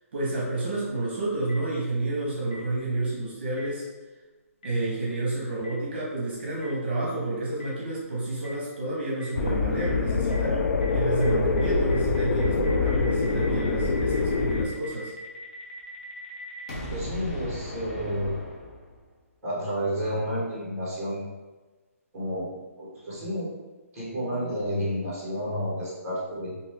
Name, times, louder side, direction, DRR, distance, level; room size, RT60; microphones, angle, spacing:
voice 1, 0.1-3.9 4.6-10.7 10.9-15.1, right 2 dB, 45° right, -5 dB, 0.9 m, -30 dB
Boom, 1.5-1.6 2.5-2.6 3.6-3.7 4.6-4.7 5.6-5.7 6.6-6.7 7.6-7.7 8.4-8.5 9.2-9.3 9.8-9.9 10.3-10.4 10.8-10.9 11.2-11.3 11.6-19.1, equal, 25° left, 0.5 m, -39 dB
sound 1, 9.3-14.7, left 4 dB, 80° left, 0.4 m, -25 dB
voice 2, 16.9-18.3 19.4-21.2 22.1-22.5 22.8-23.5 23.9-26.5, equal, 10° right, -8 dB, 1.0 m, -30 dB
2.7 x 2.5 x 3.4 m, 1.2 s
hypercardioid pair, 180°, 8 cm